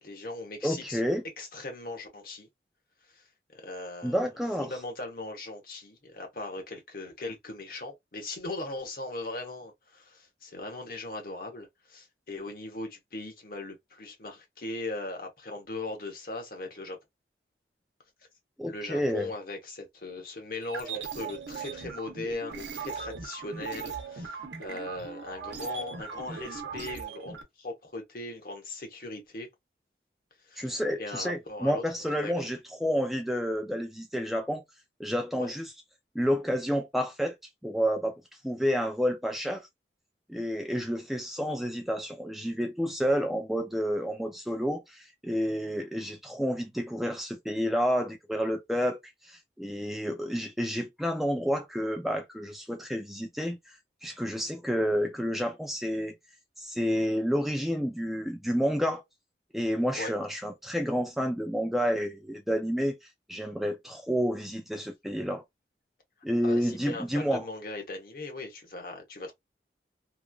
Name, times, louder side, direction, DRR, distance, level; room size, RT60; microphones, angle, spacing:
voice 1, 0.0-1.0 1.4-2.5 3.1-3.2 3.5-4.2 4.6-17.0 18.7-29.5 30.5-31.8 32.2-32.5 35.3-35.5 60.0-60.1 66.4-69.3, left 2 dB, 55° left, 0.9 m, -39 dB
voice 2, 0.6-1.2 4.0-4.7 18.6-19.3 30.6-34.6 35.0-35.7 36.1-37.4 37.6-38.1 38.4-39.7 40.3-56.1 56.6-59.0 59.5-65.4 66.2-67.5, equal, ahead, 0.3 m, -30 dB
sound 1, 20.6-27.4, right 6 dB, 90° right, 0.7 m, -39 dB
3.0 x 2.4 x 2.2 m
head